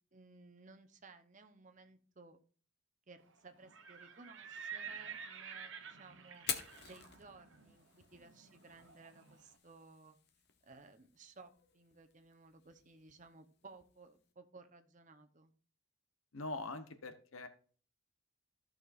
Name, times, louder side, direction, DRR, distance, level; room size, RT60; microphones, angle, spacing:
voice 1, 0.1-2.4 3.1-6.5 6.8-10.2 10.6-15.5, right 3 dB, 35° right, 8 dB, 0.9 m, -58 dB
Livestock farm animals working animals, 3.6-9.4, right 6 dB, 60° right, 1.1 m, -50 dB
Fire, 6.3-14.3, left 8 dB, 50° left, 1.0 m, -49 dB
voice 2, 16.3-17.5, left 2 dB, 75° left, 9 dB, 1.0 m, -43 dB
14.0 x 6.5 x 2.6 m, 0.41 s
head